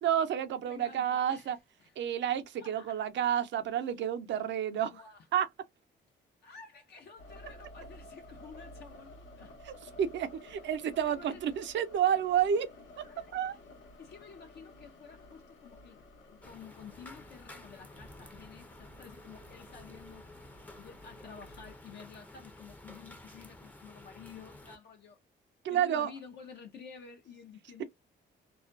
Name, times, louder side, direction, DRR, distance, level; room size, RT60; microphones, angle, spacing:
voice 1, 0.0-1.6 2.0-5.0 5.3-5.5 9.6-12.7 13.3-13.6 25.6-26.1, right 9 dB, 65° right, 0.6 m, -30 dB
voice 2, 0.7-1.6 1.8-1.9 2.6-3.0 3.7-3.8 4.9-5.3 6.4-9.6 11.0-11.4 13.0-13.6 14.0-20.3 20.8-25.2 25.7-27.8, left 6 dB, 55° left, 0.5 m, -51 dB
sound 1, 7.2-21.7, left 1 dB, 80° left, 0.9 m, -53 dB
sound 2, 16.4-24.8, left 1 dB, 10° left, 0.5 m, -52 dB
2.3 x 2.1 x 2.4 m
cardioid pair, 90°, 20 cm